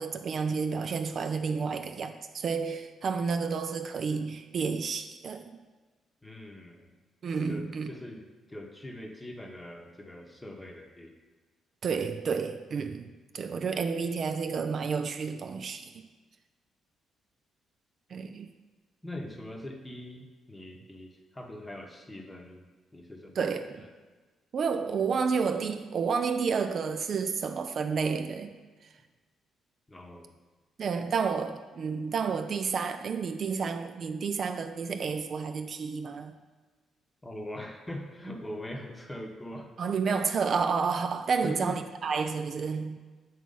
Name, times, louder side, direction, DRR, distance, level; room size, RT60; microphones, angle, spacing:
voice 1, 0.0-5.5 7.2-7.9 11.8-13.1 13.3-16.0 18.1-18.5 23.4-23.8 24.5-28.5 30.8-36.4 39.8-43.0, right 5 dB, 55° right, 0.4 m, -30 dB
voice 2, 6.2-7.0 7.5-11.1 19.0-22.6 22.9-23.4 23.8-23.9 29.9-30.3 37.2-39.7 41.4-41.8, left 1 dB, 15° left, 0.9 m, -42 dB
7.5 x 3.0 x 5.4 m
cardioid pair, 90°, 0 cm